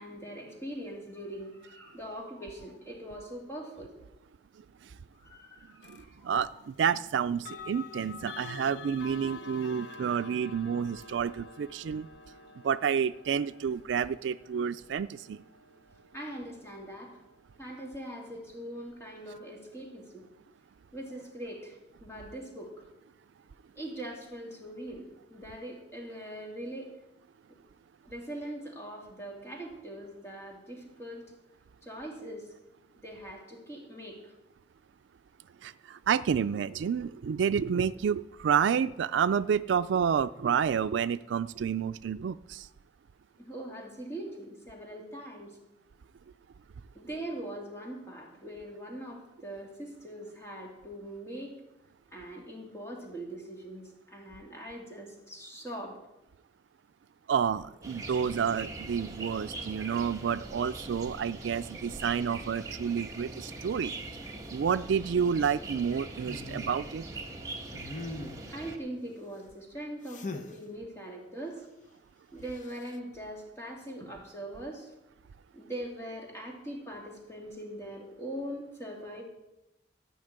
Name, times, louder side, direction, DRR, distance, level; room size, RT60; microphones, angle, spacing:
voice 1, 0.0-3.9 5.2-6.5 9.2-10.1 16.1-17.2 17.6-20.2 20.9-22.9 23.8-26.9 28.0-31.2 31.8-32.5 33.0-34.3 43.4-45.6 46.9-51.5 52.1-56.0 68.5-71.6 72.3-74.9 75.5-79.2, right 1 dB, 15° left, -1 dB, 2.8 m, -42 dB
sound 1, 5.8-6.0 7.3-18.2, left 4 dB, 75° left, 0.8 m, -48 dB
voice 2, 5.9-12.1 12.6-15.4 35.6-42.7 57.3-63.9 64.5-67.0, right 7 dB, 90° right, 13 dB, 0.3 m, -29 dB
sound 2, 57.8-68.8, right 2 dB, 20° right, 1.4 m, -42 dB
sound 3, 66.2-66.8 67.7-68.6 70.1-70.6 72.5-72.9, left 2 dB, 45° left, 0.9 m, -41 dB
14.0 x 5.8 x 8.8 m, 0.93 s
head